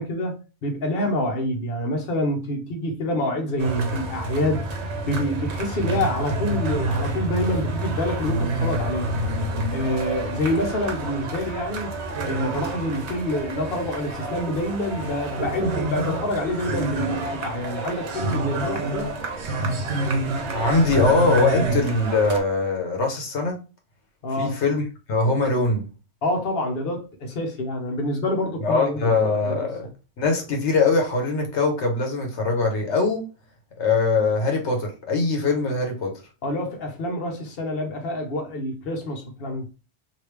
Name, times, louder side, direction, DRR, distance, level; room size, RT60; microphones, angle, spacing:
voice 1, 0.0-4.6 5.0-9.2 9.7-11.9 12.2-19.1 24.2-24.6 26.2-29.2 29.4-29.6 36.4-39.7, left 1 dB, 55° left, 1.0 m, -27 dB
sound 1, 3.6-22.4, right 2 dB, 75° right, 1.1 m, -28 dB
voice 2, 20.5-23.6 24.4-25.9 28.6-29.8 30.2-33.2 33.8-36.1, left 3 dB, 85° left, 1.2 m, -22 dB
3.2 x 2.8 x 3.1 m
omnidirectional pair, 1.1 m